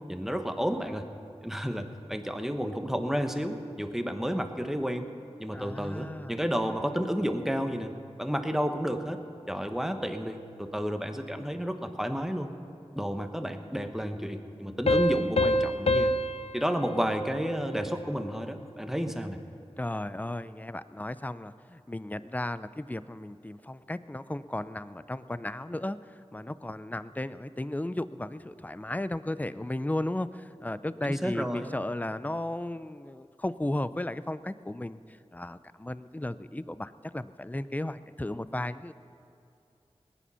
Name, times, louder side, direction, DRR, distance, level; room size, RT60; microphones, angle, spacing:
voice 1, 0.1-1.0 1.4-5.1 5.4-9.2 9.5-12.5 12.9-16.1 16.5-19.4 31.0-31.7, equal, 5° right, 6 dB, 1.1 m, -31 dB
voice 2, 5.5-6.4 19.8-26.0 26.3-38.9, left 1 dB, 15° left, 14 dB, 0.5 m, -35 dB
sound 1, 14.9-18.2, left 1 dB, 70° left, 0.5 m, -28 dB
20.0 x 10.0 x 5.7 m, 2.7 s
wide cardioid pair, 55°, 11 cm